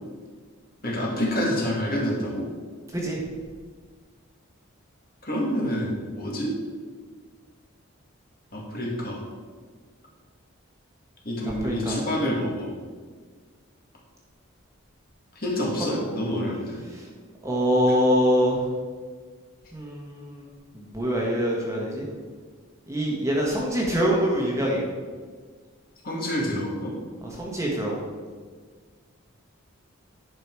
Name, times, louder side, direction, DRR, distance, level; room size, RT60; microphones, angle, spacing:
voice 1, 0.8-2.4 5.2-6.5 8.5-9.2 11.2-12.7 15.4-16.8 26.0-26.9, equal, 45° left, -3 dB, 2.2 m, -27 dB
voice 2, 11.6-12.0 15.9-16.0 17.4-18.6 19.7-20.4 20.7-22.0 22.9-24.8 27.4-28.0, equal, 15° right, -3 dB, 1.4 m, -24 dB
10.5 x 6.1 x 4.7 m, 1.5 s
head